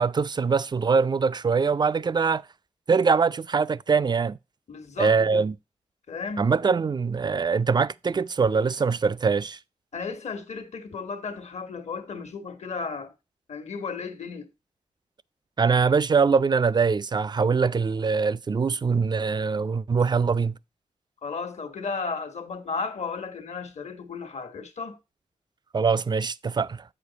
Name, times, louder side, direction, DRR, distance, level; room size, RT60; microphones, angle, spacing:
voice 1, 0.0-2.4 2.9-4.4 5.0-5.5 6.4-9.6 15.6-20.6 25.7-26.8, right 5 dB, 35° right, 0.4 m, -23 dB
voice 2, 4.7-5.4 6.1-6.5 9.9-13.1 13.5-14.5 21.2-25.0, left 4 dB, 60° left, 1.3 m, -34 dB
8.0 x 5.1 x 4.0 m
supercardioid pair, 45°, 13 cm